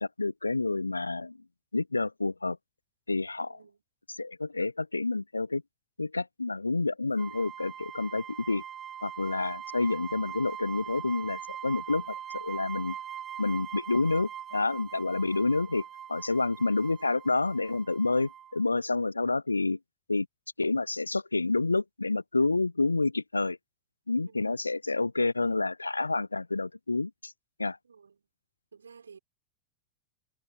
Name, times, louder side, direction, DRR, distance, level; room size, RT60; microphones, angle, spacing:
voice 1, 0.0-1.4 1.7-2.6 3.1-3.6 4.2-5.6 6.0-8.6 9.0-13.0 13.4-19.8 20.1-20.3 20.6-23.6 24.1-27.3 27.6-27.8, left 3 dB, 80° left, 0.3 m, -29 dB
voice 2, 3.5-3.8 19.0-19.2 24.2-24.6 27.8-28.3 28.7-29.2, right 6 dB, 75° right, 5.2 m, -54 dB
sound 1, 7.2-18.6, right 9 dB, 25° right, 1.3 m, -42 dB
figure-of-eight pair, 90°, 0 cm